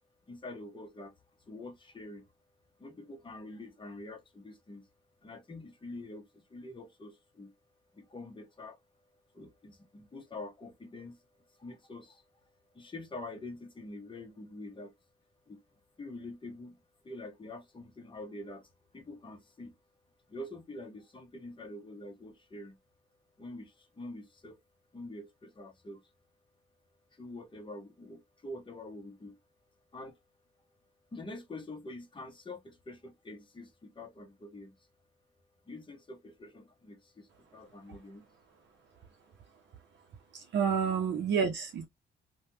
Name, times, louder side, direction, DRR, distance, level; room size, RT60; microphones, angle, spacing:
voice 1, 0.3-1.1 1.5-2.3 2.8-4.9 5.2-7.5 7.9-8.8 9.3-11.2 11.5-12.2 12.7-14.9 15.5-15.6 16.0-19.7 20.3-22.8 23.4-24.6 24.9-26.0 27.1-29.4 29.9-30.2 31.1-34.8 35.6-38.3, left 2 dB, 25° left, 0.9 m, -46 dB
voice 2, 40.3-41.9, right 7 dB, 65° right, 0.7 m, -29 dB
3.3 x 2.3 x 2.7 m
cardioid pair, 90°, 20 cm